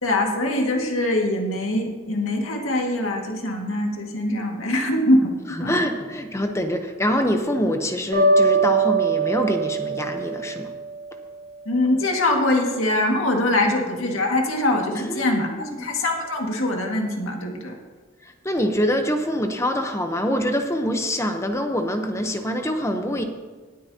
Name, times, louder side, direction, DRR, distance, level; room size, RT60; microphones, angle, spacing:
voice 1, 0.0-5.3 5.6-5.8 11.7-17.7, left 1 dB, 85° left, 1 dB, 1.9 m, -23 dB
voice 2, 5.6-10.7 13.6-13.7 15.0-15.9 18.4-23.2, equal, 15° left, 5 dB, 0.8 m, -25 dB
sound 1, 8.1-11.2, right 3 dB, 75° right, 4.0 m, -22 dB
18.5 x 9.4 x 2.8 m, 1.4 s
head